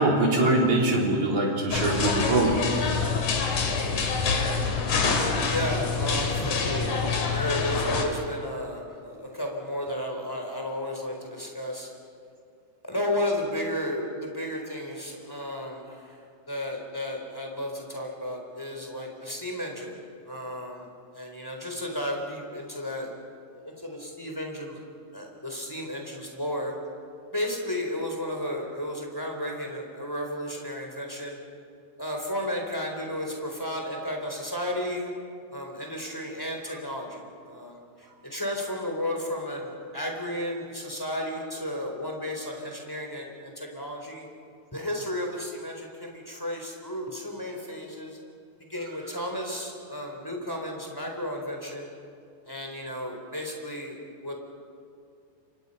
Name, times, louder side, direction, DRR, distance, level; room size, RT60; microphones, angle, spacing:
voice 1, 0.0-2.6, right 2 dB, 75° right, -1 dB, 5.0 m, -23 dB
sound 1, 1.7-8.0, left 5 dB, 80° left, 3.8 m, -26 dB
voice 2, 5.4-11.9 12.9-16.2 16.5-20.0 20.3-20.9 21.1-23.1 23.6-24.8 25.1-26.7 27.3-31.4 32.0-35.1 35.5-44.3 44.7-48.2 48.7-51.9 52.5-54.0 54.2-54.4, left 1 dB, 5° left, 1 dB, 3.9 m, -33 dB
29.0 x 25.0 x 5.6 m, 2.4 s
omnidirectional pair, 3.4 m